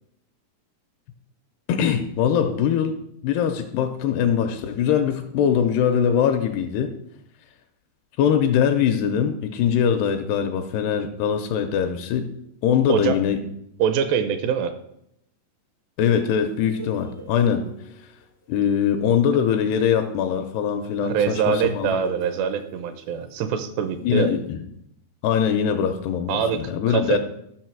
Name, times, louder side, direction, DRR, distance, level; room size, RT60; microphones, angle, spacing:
voice 1, 1.7-6.9 8.2-12.3 12.6-13.4 16.0-17.7 18.5-21.9 24.0-24.6 25.2-27.2, left 8 dB, 85° left, 7 dB, 2.5 m, -22 dB
voice 2, 13.8-14.7 21.0-24.3 26.3-27.2, right 7 dB, 80° right, 10 dB, 2.7 m, -24 dB
sound 1, 16.4-23.6 24.3-24.5, right 1 dB, 55° left, 0.7 m, -45 dB
13.0 x 6.2 x 4.5 m, 0.76 s
omnidirectional pair, 5.1 m